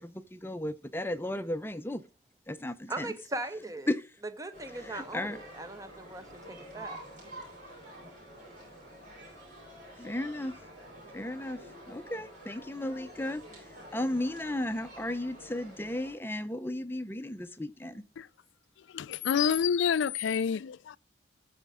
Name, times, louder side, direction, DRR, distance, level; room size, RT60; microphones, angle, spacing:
voice 1, 0.0-2.0 2.5-3.1 3.9-4.0 4.8-5.4 10.0-10.5 11.1-11.6 11.9-18.0, left 1 dB, 10° left, 0.6 m, -35 dB
voice 2, 2.9-3.9 4.4-7.0, right 2 dB, 15° right, 0.8 m, -39 dB
sound 1, 4.5-16.1, right 1 dB, 40° right, 6.0 m, -49 dB
voice 3, 18.9-21.0, left 7 dB, 75° left, 0.3 m, -28 dB
14.5 x 5.1 x 3.6 m
head